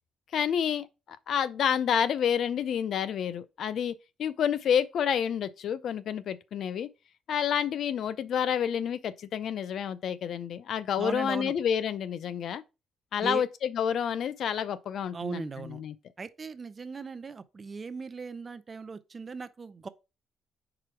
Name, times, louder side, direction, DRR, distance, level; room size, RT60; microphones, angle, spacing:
voice 1, 0.3-6.9 7.3-12.6 13.1-15.9, left 8 dB, 65° left, 0.5 m, -29 dB
voice 2, 11.0-11.5 13.2-13.4 15.1-15.8 16.2-19.9, right 4 dB, 35° right, 0.6 m, -38 dB
4.9 x 4.2 x 4.9 m
cardioid pair, 90°, 0 cm